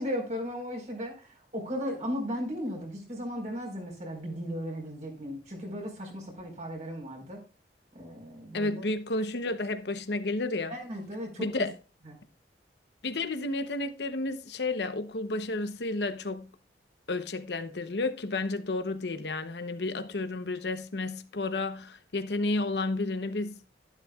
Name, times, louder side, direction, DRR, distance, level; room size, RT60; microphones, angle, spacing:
voice 1, 0.0-7.4 7.9-8.8 10.7-11.7 12.0-12.1, equal, 45° right, 4.6 m, -36 dB
voice 2, 8.5-10.7 11.4-11.7 13.0-16.5 17.1-23.6, left 2 dB, 75° left, 0.9 m, -31 dB
12.5 x 11.5 x 2.4 m
head